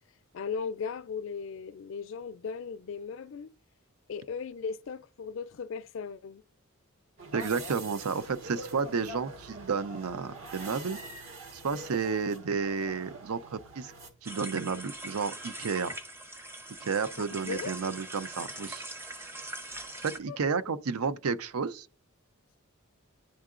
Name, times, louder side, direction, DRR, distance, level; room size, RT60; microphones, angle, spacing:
voice 1, 0.3-3.5 4.1-6.4 17.2-17.7 20.3-20.4, left 5 dB, 60° left, 0.4 m, -37 dB
sound 1, 7.2-14.1, right 2 dB, 70° right, 1.3 m, -44 dB
voice 2, 7.3-11.0 11.5-13.9 14.2-16.0 16.8-18.9 20.0-21.9, right 5 dB, 85° right, 0.5 m, -31 dB
sound 2, 14.2-20.2, right 1 dB, 10° right, 0.5 m, -42 dB
10.5 x 3.7 x 2.4 m
head